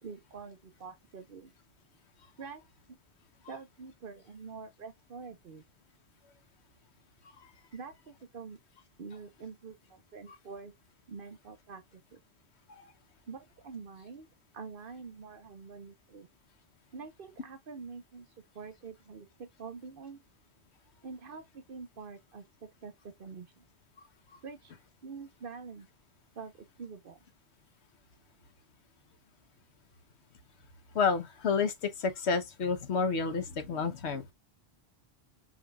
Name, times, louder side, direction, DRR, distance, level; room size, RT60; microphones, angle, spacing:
voice 1, 0.0-1.5 2.4-2.6 2.9-3.0 3.5-5.6 7.7-8.6 9.0-10.7 11.1-12.2 13.3-16.3 16.9-18.3 18.5-20.2 21.0-23.6 24.4-24.7 25.0-25.9 26.4-27.2, right 5 dB, 60° right, 1.0 m, -46 dB
voice 2, 30.9-34.3, left 5 dB, 85° left, 1.3 m, -30 dB
6.2 x 3.2 x 2.3 m
omnidirectional pair, 1.1 m